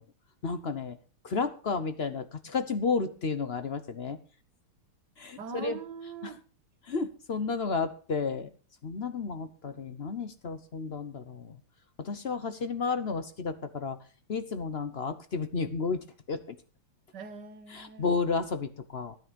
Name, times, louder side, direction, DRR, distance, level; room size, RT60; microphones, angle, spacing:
voice 1, 0.4-1.0 1.2-4.2 5.2-5.8 6.2-6.3 6.9-8.5 8.8-11.6 12.0-14.0 14.3-16.6 17.7-19.2, left 4 dB, 50° left, 0.7 m, -32 dB
voice 2, 5.4-6.4 17.1-18.2, right 6 dB, 55° right, 1.9 m, -42 dB
15.5 x 9.9 x 5.2 m
omnidirectional pair, 2.3 m